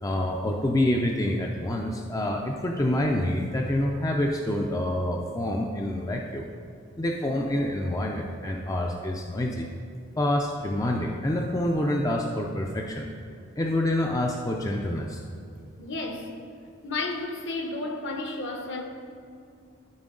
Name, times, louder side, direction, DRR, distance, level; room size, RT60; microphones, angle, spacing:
voice 1, 0.0-6.5 7.0-9.7 10.2-13.1 13.6-15.2, left 1 dB, 15° left, 1 dB, 0.4 m, -27 dB
voice 2, 15.8-16.3 16.8-18.8, left 2 dB, 60° left, 3 dB, 1.0 m, -32 dB
13.5 x 4.5 x 3.7 m, 2.5 s
head